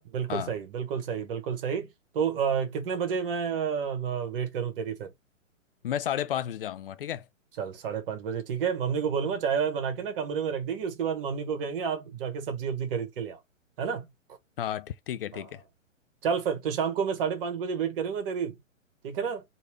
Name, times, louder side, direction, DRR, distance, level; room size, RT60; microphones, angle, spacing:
voice 1, 0.1-1.9 2.1-5.1 7.6-13.4 13.8-14.1 15.3-15.4 16.2-18.5 19.0-19.4, right 7 dB, 45° right, 1.3 m, -30 dB
voice 2, 5.8-7.3 14.6-15.6, left 10 dB, 45° left, 0.4 m, -32 dB
3.1 x 2.8 x 4.5 m
figure-of-eight pair, 120°, 40 cm